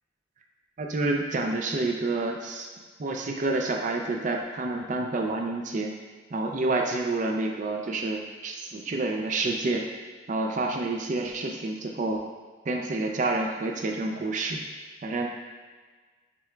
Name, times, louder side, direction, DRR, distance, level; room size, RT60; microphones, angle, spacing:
voice 1, 0.8-2.7 3.0-5.9 6.3-9.8 10.3-12.2 12.7-14.6 15.0-15.3, right 2 dB, 40° right, 2 dB, 0.4 m, -28 dB
6.7 x 3.2 x 2.3 m, 1.4 s
head